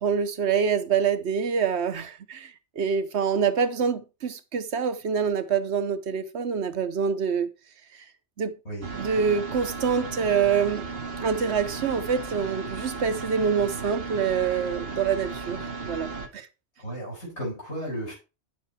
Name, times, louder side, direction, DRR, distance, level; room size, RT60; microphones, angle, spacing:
voice 1, 0.0-7.5 7.9-8.0 8.4-8.5 8.9-10.9 11.2-16.5, right 6 dB, 80° right, 1.2 m, -26 dB
sound 1, 8.8-16.3, right 4 dB, 60° right, 1.4 m, -35 dB
voice 2, 16.8-18.1, equal, 80° left, 7.0 m, -34 dB
9.1 x 6.5 x 4.2 m
omnidirectional pair, 1.1 m